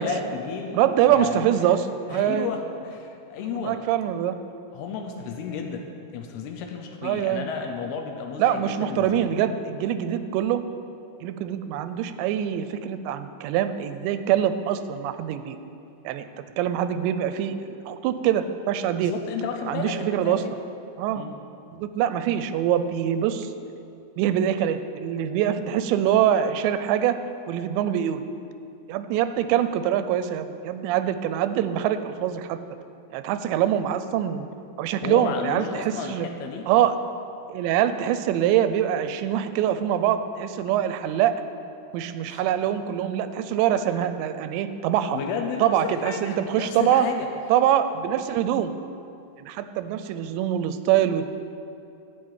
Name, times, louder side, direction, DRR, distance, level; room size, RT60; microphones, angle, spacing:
voice 1, 0.0-1.5 2.1-3.8 4.7-5.8 6.1-9.4 19.0-20.6 21.1-21.3 35.0-36.7 42.3-42.4 43.7-44.1 45.1-47.3, left 5 dB, 75° left, 4 dB, 2.6 m, -32 dB
voice 2, 0.7-2.5 3.5-4.4 7.0-7.5 8.4-10.6 11.2-15.6 16.1-19.1 19.7-20.5 21.0-21.2 21.7-23.5 24.2-27.2 27.5-28.2 28.9-32.6 33.1-34.5 34.8-36.3 36.7-37.0 37.5-41.4 41.9-45.2 45.6-47.1 47.5-48.7 49.4-51.3, right 10 dB, 90° right, 11 dB, 2.9 m, -24 dB
13.0 x 6.0 x 8.7 m, 2.7 s
omnidirectional pair, 5.0 m